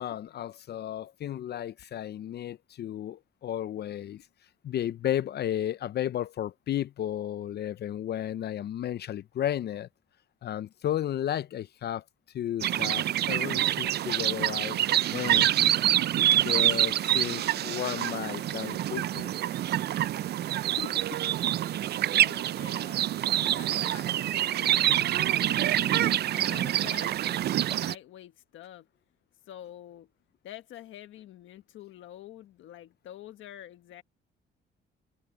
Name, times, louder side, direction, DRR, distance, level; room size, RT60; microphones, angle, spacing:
voice 1, 0.0-4.3 4.6-9.9 10.4-12.0 12.3-15.7 16.4-19.3 20.8-21.2 25.2-25.4, left 11 dB, 55° left, 0.5 m, -33 dB
sound 1, 12.6-27.9, right 12 dB, 55° right, 0.4 m, -26 dB
voice 2, 22.1-24.9 25.4-28.9 29.5-30.1 30.4-34.0, left 12 dB, 80° left, 1.3 m, -47 dB
cardioid pair, 90°, 20 cm